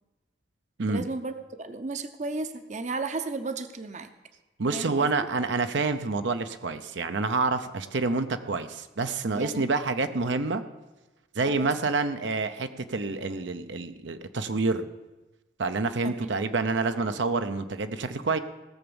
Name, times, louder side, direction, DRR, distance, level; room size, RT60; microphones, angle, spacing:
voice 1, 0.9-4.1 4.7-5.1 9.4-9.8 11.4-11.7 16.0-16.3, right 3 dB, 40° right, 9 dB, 0.7 m, -34 dB
voice 2, 4.6-10.6 11.3-14.9 15.6-18.4, right 3 dB, 75° right, 9 dB, 0.7 m, -28 dB
17.0 x 7.0 x 7.0 m, 1.1 s
head